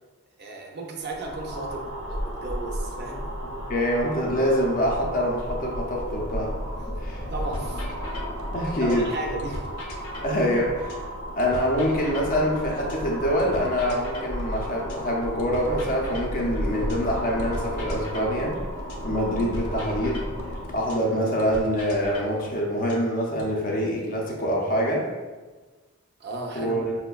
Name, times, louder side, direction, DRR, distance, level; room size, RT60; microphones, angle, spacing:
voice 1, 0.4-3.3 7.2-7.8 8.8-9.7 26.2-26.7, right 2 dB, 50° right, 1 dB, 0.5 m, -34 dB
sound 1, 1.0-20.9, equal, 85° right, 0.7 m, -33 dB
voice 2, 3.7-6.6 6.9-7.2 8.5-9.1 10.2-11.0 11.4-18.6 19.0-20.4 20.7-25.1 26.5-27.0, equal, 40° left, -2 dB, 0.5 m, -25 dB
sound 2, 7.5-9.1 9.4-13.1 13.4-17.1 17.4-21.1 21.4-23.5, left 1 dB, 85° left, 0.6 m, -41 dB
5.2 x 2.1 x 2.2 m, 1.3 s
head